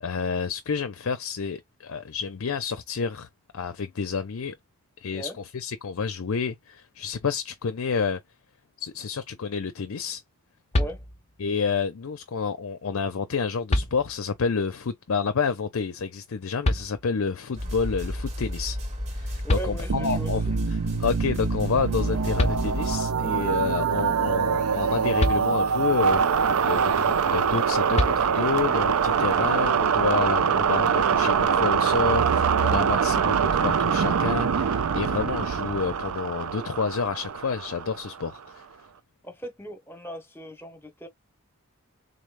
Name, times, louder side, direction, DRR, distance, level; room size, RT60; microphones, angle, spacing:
voice 1, 0.0-3.3 3.5-4.6 5.0-8.2 8.8-10.2 11.4-18.8 19.1-20.4 21.0-38.6, left 5 dB, 65° left, 0.5 m, -29 dB
sound 1, 10.7-11.5 13.0-13.1 13.7-14.5 16.6-17.4 19.1-19.2 19.5-20.3 22.0-22.1 22.4-23.1 25.2-26.0 27.9-28.7, left 1 dB, 30° left, 0.7 m, -28 dB
sound 2, 17.6-23.0, left 1 dB, 30° right, 1.2 m, -32 dB
voice 2, 19.4-20.6 39.2-41.1, right 1 dB, 10° left, 1.2 m, -38 dB
sound 3, 19.9-38.4, right 6 dB, 80° right, 0.5 m, -24 dB
4.0 x 3.3 x 2.5 m
head